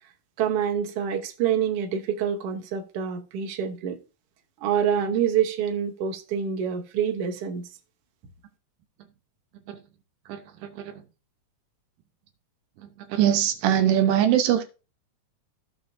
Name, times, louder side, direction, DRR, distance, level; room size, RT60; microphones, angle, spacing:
voice 1, 0.4-4.0 4.6-7.7, right 8 dB, 60° right, 1.7 m, -26 dB
voice 2, 10.3-10.9 13.1-14.6, right 10 dB, 80° right, 2.5 m, -22 dB
15.0 x 5.7 x 2.6 m
omnidirectional pair, 3.8 m